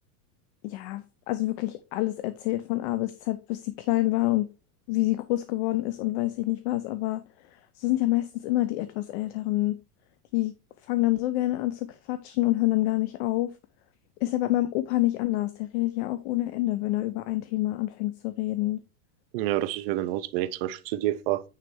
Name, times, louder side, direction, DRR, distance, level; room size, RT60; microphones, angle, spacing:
voice 1, 0.6-4.5 4.9-7.2 7.8-9.8 10.3-10.5 10.9-13.5 14.2-18.8, left 17 dB, 50° left, 0.6 m, -27 dB
voice 2, 19.3-21.4, right 15 dB, 40° right, 0.6 m, -28 dB
9.2 x 3.3 x 4.6 m
supercardioid pair, 175°, 45 cm